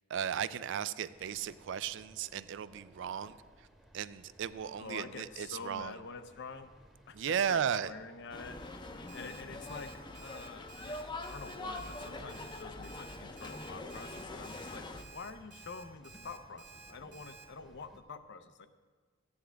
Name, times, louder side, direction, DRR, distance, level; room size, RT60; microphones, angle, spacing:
voice 1, 0.1-3.4 3.9-6.0 7.1-7.9, right 8 dB, 65° right, 15 dB, 0.4 m, -35 dB
sound 1, 1.1-18.0, equal, ahead, 1.0 m, -60 dB
voice 2, 4.8-6.7 7.1-18.7, left 4 dB, 65° left, 10 dB, 0.6 m, -47 dB
sound 2, 8.3-15.0, left 2 dB, 25° left, 0.6 m, -44 dB
Alarm, 9.1-17.4, right 5 dB, 40° right, 1.6 m, -53 dB
14.0 x 9.6 x 3.4 m, 1.5 s
head